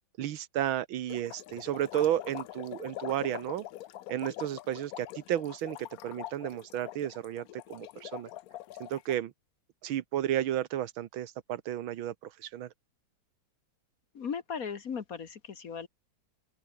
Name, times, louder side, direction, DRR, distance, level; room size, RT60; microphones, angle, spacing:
voice 1, 0.2-3.6 4.1-8.3 8.8-9.3 9.8-12.1 12.4-12.7, right 11 dB, 80° right, 1.8 m, -32 dB
sound 1, 1.1-9.2, left 14 dB, 75° left, 0.8 m, -44 dB
voice 2, 14.1-15.9, left 6 dB, 50° left, 1.6 m, -37 dB
open air
omnidirectional pair, 2.2 m